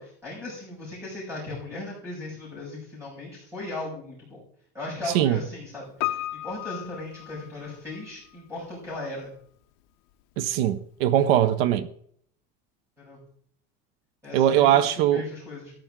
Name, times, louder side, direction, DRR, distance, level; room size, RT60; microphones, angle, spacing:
voice 1, 0.0-4.4 4.7-9.3 13.0-13.2 14.2-15.7, left 2 dB, 10° right, 5.7 m, -37 dB
Piano, 6.0-8.1 8.3-8.4, left 16 dB, 55° left, 0.8 m, -33 dB
voice 2, 10.4-11.9 14.3-15.2, right 11 dB, 75° right, 0.9 m, -21 dB
14.0 x 10.5 x 3.7 m
cardioid pair, 175°, 30 cm